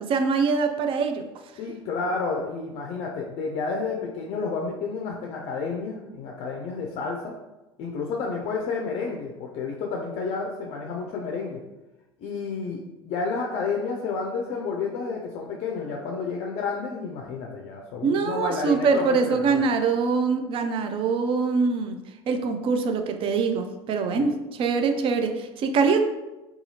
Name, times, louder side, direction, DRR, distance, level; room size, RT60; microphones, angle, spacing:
voice 1, 0.1-1.3 18.0-22.0 22.3-26.0, right 5 dB, 40° right, 6 dB, 0.4 m, -24 dB
voice 2, 1.6-7.3 7.8-11.6 12.2-12.8 13.0-19.6 24.1-24.4, left 4 dB, 50° left, 0 dB, 0.4 m, -30 dB
2.7 x 2.4 x 2.7 m, 1.1 s
hypercardioid pair, 80°, 14 cm